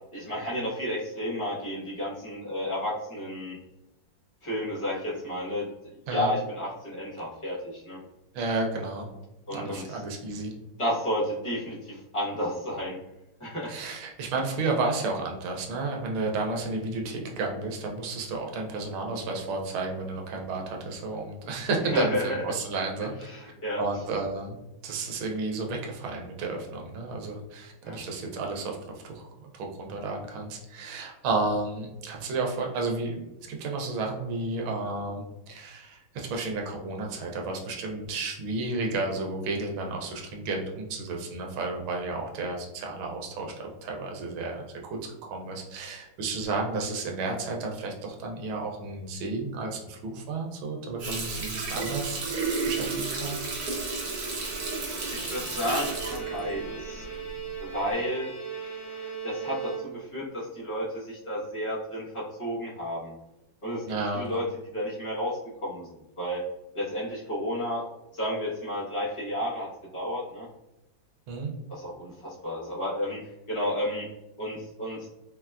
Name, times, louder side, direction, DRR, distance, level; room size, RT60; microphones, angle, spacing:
voice 1, 0.1-3.6 4.4-8.0 9.5-10.0 10.8-13.0 13.4-13.7 21.9-22.4 23.2-23.8 27.8-28.0 55.1-57.0 57.6-58.3 59.2-63.1 63.6-63.8 64.1-64.4 64.7-65.9 66.2-66.4 66.7-67.9 68.1-70.5 71.7-74.1 74.4-75.1, equal, 50° left, -8 dB, 0.3 m, -32 dB
voice 2, 8.3-9.1 9.5-10.5 13.7-23.3 23.8-53.4 63.9-64.3 71.3-71.5, right 3 dB, 90° right, 1 dB, 1.4 m, -32 dB
Water tap faucet, 51.0-57.4 57.8-57.9, right 4 dB, 65° right, 1.0 m, -32 dB
Bowed string instrument, 53.3-60.3, right 6 dB, 75° left, 1.3 m, -39 dB
3.9 x 2.2 x 2.3 m, 0.94 s
omnidirectional pair, 2.2 m